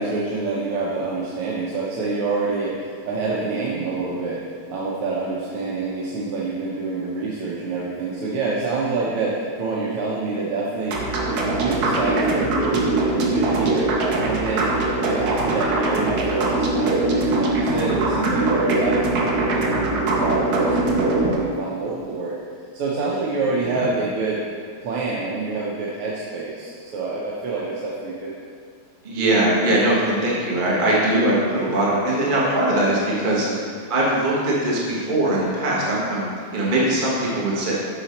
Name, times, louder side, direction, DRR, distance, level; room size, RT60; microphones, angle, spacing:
voice 1, 0.0-4.4 4.7-11.0 11.3-13.9 14.2-14.7 15.0-22.3 22.7-24.4 24.8-28.3 33.4-33.6, right 3 dB, 85° right, -6 dB, 1.8 m, -27 dB
sound 1, 10.9-21.4, right 2 dB, 60° right, 1.1 m, -22 dB
voice 2, 29.0-37.7, right 1 dB, 35° right, -5 dB, 0.8 m, -21 dB
7.3 x 4.9 x 4.3 m, 2.1 s
omnidirectional pair, 2.4 m